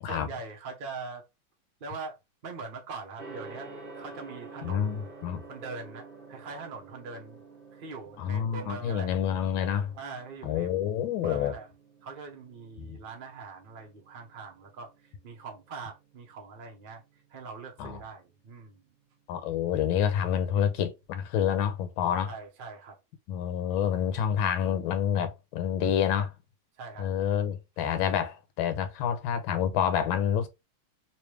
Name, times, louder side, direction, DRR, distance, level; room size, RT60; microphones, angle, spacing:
voice 1, 0.0-1.2 1.8-2.2 2.4-5.0 5.5-7.4 7.7-9.1 9.9-10.7 11.2-11.7 12.0-17.0 17.3-18.8 22.3-23.0 26.8-27.1, right 4 dB, 55° right, 0.5 m, -42 dB
Gong, 3.2-22.1, right 3 dB, 35° right, 1.0 m, -51 dB
voice 2, 4.6-5.4 8.2-9.9 10.4-11.5 12.8-13.0 17.8-18.0 19.3-22.3 23.3-26.3 27.0-30.5, left 9 dB, 80° left, 1.4 m, -28 dB
3.3 x 3.2 x 3.1 m
omnidirectional pair, 2.3 m